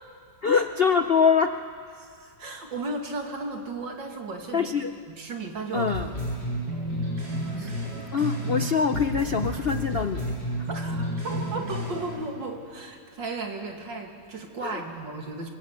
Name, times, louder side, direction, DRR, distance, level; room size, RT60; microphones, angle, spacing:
voice 1, 0.4-1.6 4.5-4.9 5.7-6.1 7.6-7.8 8.1-10.7 14.6-14.8, left 6 dB, 60° left, 8 dB, 0.6 m, -24 dB
voice 2, 2.0-4.7 5.2-5.9 10.7-15.5, right 3 dB, 85° right, 3 dB, 3.1 m, -35 dB
sound 1, 5.7-8.7 8.9-12.1, equal, 65° right, 7.9 m, -31 dB
26.5 x 22.0 x 8.5 m, 2.3 s
omnidirectional pair, 1.9 m